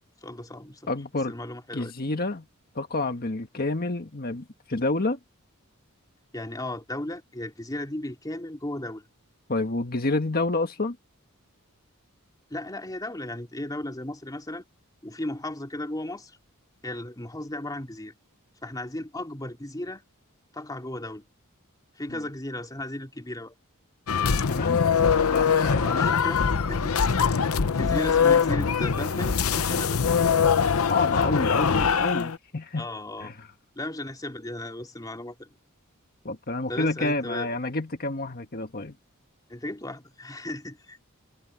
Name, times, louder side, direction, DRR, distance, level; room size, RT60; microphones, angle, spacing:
voice 1, 0.2-0.9 1.3-1.9 6.3-9.1 12.5-14.6 15.0-16.4 16.8-18.1 18.6-20.0 20.5-21.2 21.9-23.5 25.8-27.2 27.8-30.0 32.8-33.3 33.8-35.6 36.7-37.5 39.5-41.0, left 1 dB, 15° left, 2.9 m, -35 dB
voice 2, 0.9-1.3 1.7-2.4 2.7-5.2 9.5-11.0 24.2-25.8 30.9-32.9 33.2-33.3 36.2-38.9, left 2 dB, 45° left, 1.6 m, -29 dB
sound 1, 24.1-32.4, left 6 dB, 75° left, 0.8 m, -22 dB
head